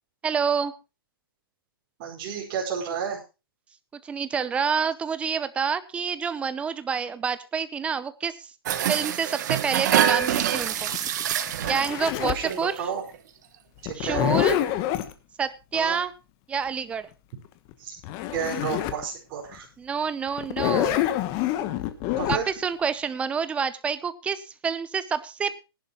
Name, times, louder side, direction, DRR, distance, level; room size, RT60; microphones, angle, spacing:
voice 1, 0.2-0.7 4.0-8.5 8.9-10.9 11.7-12.8 13.9-14.6 15.4-16.1 16.5-17.1 19.8-21.1 22.3-25.6, right 6 dB, 10° right, 14 dB, 0.7 m, -28 dB
voice 2, 2.0-3.2 12.2-13.0 13.8-14.2 15.7-16.0 17.8-18.0 18.3-19.7 22.2-22.5, right 7 dB, 30° right, -1 dB, 5.0 m, -31 dB
sound 1, 8.7-12.2 12.5-12.8 13.1-13.2, right 10 dB, 50° right, 1.4 m, -25 dB
Zipper (clothing), 9.8-12.5 13.8-15.1 17.7-17.8 18.0-19.0 19.5-19.6 20.4-22.4, left 13 dB, 30° left, 1.1 m, -27 dB
18.5 x 11.0 x 3.0 m, 0.29 s
hypercardioid pair, 150°, 12 cm